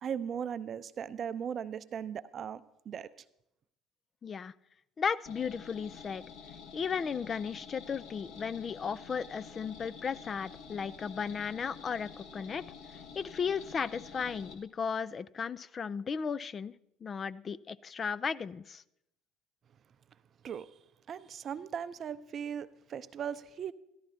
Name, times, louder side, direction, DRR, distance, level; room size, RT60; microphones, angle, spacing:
voice 1, 0.0-2.6 2.9-3.1 20.4-20.7 21.1-23.7, right 8 dB, 40° right, 15 dB, 0.6 m, -38 dB
voice 2, 4.2-4.5 5.0-6.2 6.7-12.6 12.9-16.7 17.0-18.8, left 6 dB, 35° left, 16 dB, 0.4 m, -35 dB
sound 1, 5.3-14.5, left 6 dB, 65° left, 1.8 m, -49 dB
14.0 x 12.0 x 4.2 m, 0.83 s
figure-of-eight pair, 65°, 0 cm